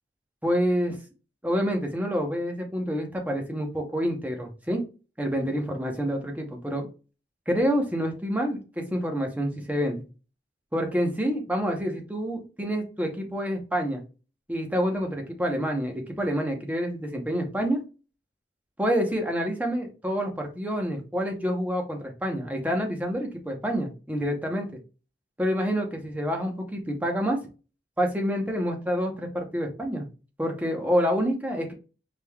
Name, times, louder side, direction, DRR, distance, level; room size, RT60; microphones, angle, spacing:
voice 1, 0.4-1.0 1.4-4.8 5.2-6.9 7.5-10.0 10.7-14.0 14.5-17.8 18.8-24.7 25.4-27.4 28.0-30.1 30.4-31.7, equal, 10° right, 2 dB, 0.8 m, -27 dB
5.1 x 3.5 x 2.3 m, 0.33 s
head